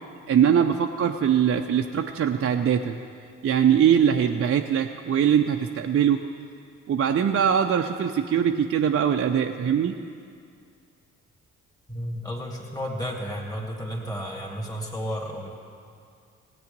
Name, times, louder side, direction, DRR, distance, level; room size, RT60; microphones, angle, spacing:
voice 1, 0.3-3.0 3.4-6.2 6.9-10.0, right 8 dB, 40° right, 4 dB, 0.6 m, -22 dB
voice 2, 11.9-15.5, equal, 10° left, -2 dB, 2.2 m, -32 dB
17.5 x 8.4 x 5.3 m, 2.4 s
hypercardioid pair, 40°, 36 cm